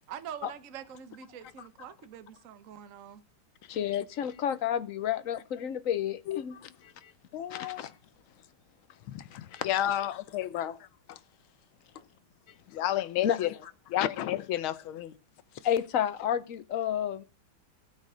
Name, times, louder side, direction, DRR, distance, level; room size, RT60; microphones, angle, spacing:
voice 1, 0.1-3.2, right 9 dB, 50° right, 1.1 m, -44 dB
voice 2, 3.7-6.6 7.5-7.9 9.3-10.0 13.2-13.4 15.6-17.2, left 9 dB, 60° left, 0.9 m, -31 dB
voice 3, 7.3-7.8 9.1-9.3 9.6-10.8 11.1-11.2 12.7-13.5 13.9-15.2, left 12 dB, 85° left, 1.6 m, -31 dB
16.0 x 8.3 x 4.9 m
omnidirectional pair, 2.2 m